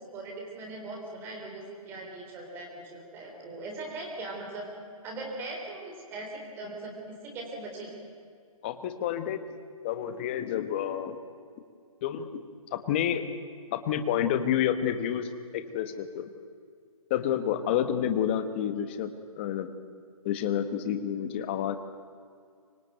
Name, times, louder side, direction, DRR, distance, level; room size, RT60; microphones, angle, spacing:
voice 1, 0.0-4.7 5.0-7.9, right 2 dB, 10° right, 1 dB, 3.7 m, -40 dB
voice 2, 8.6-9.4 9.8-11.2 12.0-12.4 12.7-13.2 13.7-16.3 17.1-19.7 20.2-21.8, left 9 dB, 20° left, 9 dB, 1.2 m, -29 dB
25.0 x 19.5 x 9.3 m, 2.2 s
hypercardioid pair, 170°, 19 cm